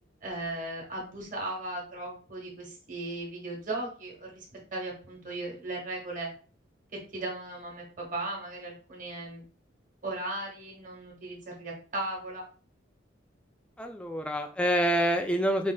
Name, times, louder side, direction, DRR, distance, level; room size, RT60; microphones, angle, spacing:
voice 1, 0.2-4.5 4.7-6.3 7.1-9.4 10.0-12.5, right 2 dB, 45° right, -1 dB, 1.1 m, -37 dB
voice 2, 13.8-15.7, equal, 5° left, 4 dB, 0.3 m, -27 dB
4.6 x 2.4 x 2.2 m, 0.39 s
head